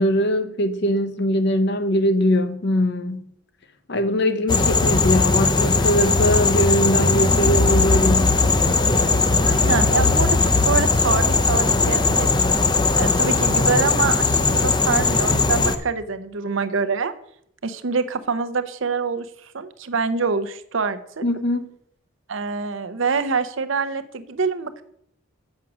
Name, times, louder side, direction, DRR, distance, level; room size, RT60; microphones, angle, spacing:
voice 1, 0.0-3.2 3.9-8.3 21.2-21.7, equal, 55° left, 0.7 m, -21 dB
sound 1, 4.5-15.8, left 3 dB, 20° left, 0.5 m, -19 dB
voice 2, 9.4-12.3 13.0-17.1 17.6-21.2 22.3-24.8, right 5 dB, 65° right, 0.6 m, -25 dB
7.4 x 6.0 x 6.1 m
head